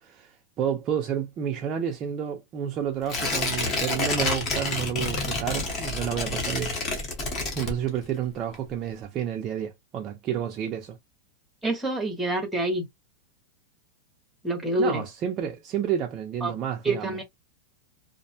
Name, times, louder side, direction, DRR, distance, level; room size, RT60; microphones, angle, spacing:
voice 1, 0.0-6.7 7.5-11.0 14.8-17.2, right 9 dB, 25° right, 0.4 m, -30 dB
Tearing, 3.1-8.2 8.5-8.6, left 3 dB, 25° left, 0.8 m, -29 dB
voice 2, 11.6-12.8 14.4-15.0 16.4-16.5 16.8-17.2, right 1 dB, ahead, 0.8 m, -26 dB
2.5 x 2.0 x 2.7 m
supercardioid pair, 170°, 0 cm